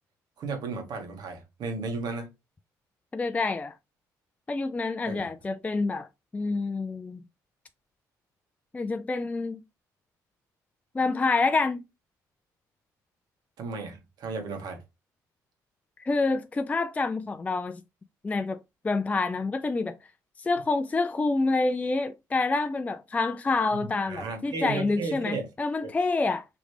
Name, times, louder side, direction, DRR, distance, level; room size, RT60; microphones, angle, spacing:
voice 1, 0.4-2.3 5.0-5.3 13.6-14.8 23.7-23.8 24.1-25.5 25.8-25.9, right 4 dB, 70° right, 1.7 m, -34 dB
voice 2, 3.1-3.7 4.5-6.1 6.3-7.2 8.7-9.6 10.9-11.9 16.0-17.8 18.2-18.6 18.8-20.0 20.4-26.5, left 3 dB, 20° left, 0.4 m, -27 dB
5.1 x 3.1 x 3.2 m
supercardioid pair, 80°, 7 cm